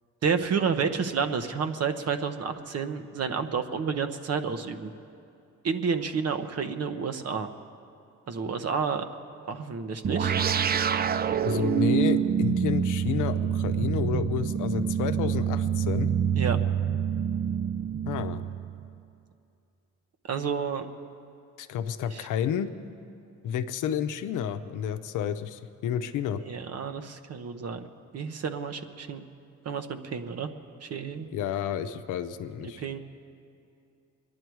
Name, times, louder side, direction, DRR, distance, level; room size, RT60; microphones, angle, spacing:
voice 1, 0.2-4.9 5.6-7.5 8.3-9.0 9.5-10.4 16.4-16.6 20.3-20.9 22.1-22.3 26.5-27.9 28.1-29.2 29.6-30.5 30.8-31.3 32.6-33.0, right 6 dB, 55° right, 8 dB, 1.0 m, -30 dB
sound 1, 10.0-18.9, right 8 dB, 30° right, 0.4 m, -26 dB
voice 2, 11.4-16.1 18.1-18.4 21.6-22.7 23.4-26.4 31.3-32.8, left 9 dB, 85° left, 9 dB, 0.7 m, -30 dB
23.0 x 11.0 x 4.7 m, 2.5 s
cardioid pair, 90°, 30 cm